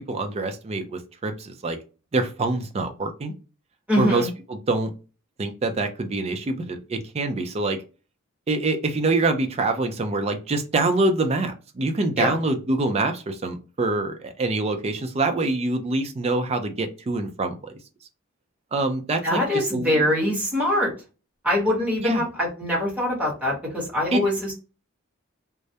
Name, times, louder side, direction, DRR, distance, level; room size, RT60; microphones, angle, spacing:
voice 1, 0.0-1.8 2.1-3.3 4.0-4.9 5.4-7.8 8.5-17.7 18.7-20.1 22.0-22.3 24.1-24.2, right 2 dB, 30° right, 6 dB, 0.4 m, -25 dB
voice 2, 3.9-4.3 12.2-12.4 19.2-20.9 21.4-24.6, left 1 dB, 5° right, -5 dB, 1.0 m, -23 dB
2.3 x 2.1 x 2.7 m, 0.34 s
head